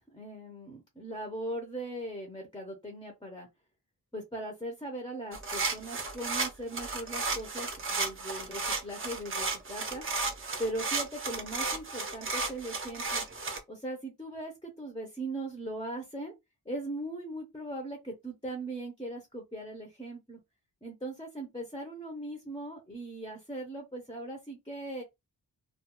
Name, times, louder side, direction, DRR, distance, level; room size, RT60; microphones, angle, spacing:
voice 1, 0.1-3.5 4.1-10.0 10.6-13.2 13.7-16.3 16.7-20.4 20.8-25.0, right 1 dB, 10° left, 0.6 m, -39 dB
sound 1, 5.3-13.6, right 3 dB, 35° right, 0.6 m, -33 dB
2.3 x 2.2 x 2.9 m
wide cardioid pair, 140°, 38 cm